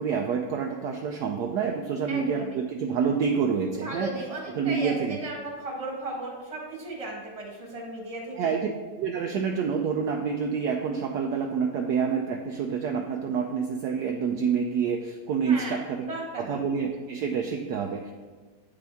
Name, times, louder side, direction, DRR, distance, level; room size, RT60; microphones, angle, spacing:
voice 1, 0.0-4.1 4.6-5.2 8.4-8.7 9.0-16.0 16.4-18.1, right 6 dB, 70° right, 2 dB, 1.0 m, -27 dB
voice 2, 2.1-2.6 3.7-8.5 15.4-16.6, right 2 dB, 20° right, -2 dB, 1.3 m, -36 dB
8.6 x 5.2 x 3.5 m, 1.3 s
omnidirectional pair, 2.0 m